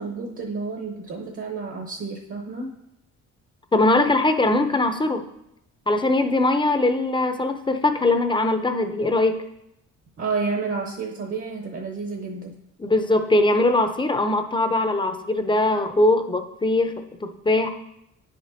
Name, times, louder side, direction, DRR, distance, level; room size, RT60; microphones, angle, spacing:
voice 1, 0.0-2.8 10.2-12.6, right 4 dB, 45° right, 2 dB, 1.0 m, -30 dB
voice 2, 3.7-5.2 5.9-9.4 12.8-16.9 17.2-17.7, left 2 dB, 15° left, 7 dB, 0.6 m, -21 dB
9.4 x 5.1 x 2.7 m, 0.81 s
cardioid pair, 90°, 30 cm